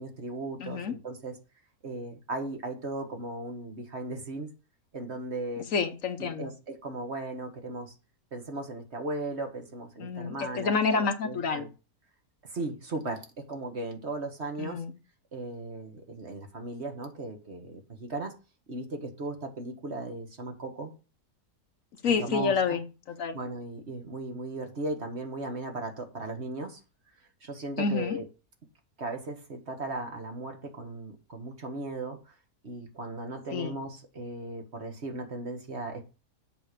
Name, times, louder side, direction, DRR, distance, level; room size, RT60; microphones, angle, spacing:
voice 1, 0.0-1.4 1.8-4.5 4.9-5.7 6.2-7.9 8.3-11.7 12.4-14.8 15.3-18.3 18.7-20.9 22.1-22.8 23.3-26.8 27.4-28.3 29.0-32.3 32.6-36.1, right 2 dB, 45° right, 4 dB, 1.8 m, -37 dB
voice 2, 0.6-0.9 5.7-6.5 10.0-11.7 14.6-14.9 22.0-23.4 27.8-28.2 33.5-33.8, left 5 dB, 60° left, 9 dB, 1.2 m, -29 dB
7.9 x 5.7 x 6.7 m, 0.32 s
omnidirectional pair, 1.6 m